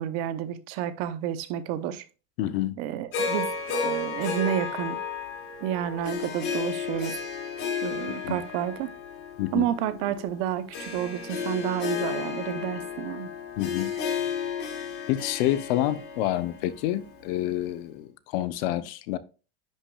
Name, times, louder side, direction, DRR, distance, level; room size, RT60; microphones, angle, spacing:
voice 1, 0.0-2.0 2.8-3.5 3.8-5.0 5.6-7.1 7.8-8.9 9.5-13.3, right 10 dB, 50° right, 0.7 m, -30 dB
voice 2, 2.4-2.8 8.2-8.4 9.4-9.7 13.6-13.9 15.1-19.2, left 13 dB, 65° left, 0.8 m, -28 dB
Harp, 3.1-17.5, left 5 dB, 45° left, 2.9 m, -33 dB
10.0 x 6.0 x 2.3 m
supercardioid pair, 150°, 33 cm